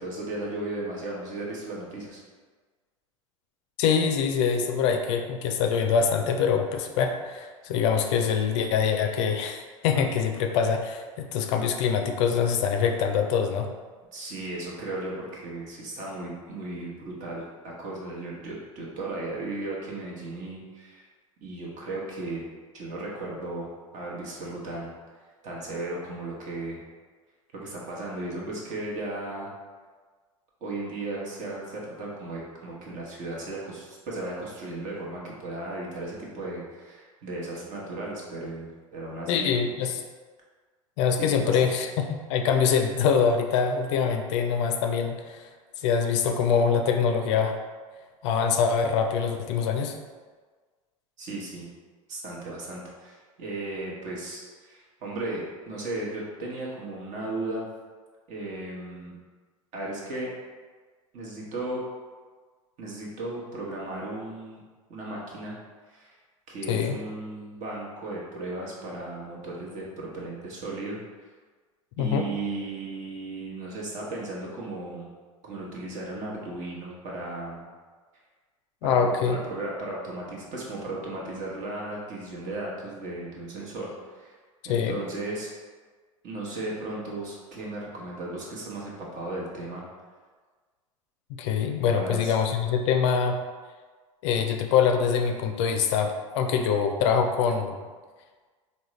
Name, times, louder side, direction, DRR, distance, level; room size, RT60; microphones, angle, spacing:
voice 1, 0.0-2.2 14.1-21.1 21.4-22.4 22.7-25.0 25.4-26.8 27.5-29.5 30.6-39.5 41.2-41.7 51.2-51.7 52.1-57.7 58.3-59.1 59.7-60.3 61.1-61.8 62.8-64.6 64.9-65.6 65.9-66.2 66.5-71.0 72.0-75.1 75.4-77.7 78.8-79.1 79.5-84.4 84.6-85.5 86.2-89.8 91.9-92.3, right 2 dB, 45° right, -4 dB, 1.1 m, -35 dB
voice 2, 3.8-13.7 39.3-40.0 41.0-45.5 45.8-47.6 48.2-50.0 66.7-67.0 72.0-72.3 78.8-79.4 84.6-85.0 91.3-93.4 94.2-97.8, left 6 dB, 60° left, 5 dB, 0.4 m, -24 dB
3.6 x 2.2 x 3.1 m, 1.4 s
hypercardioid pair, 85°, 18 cm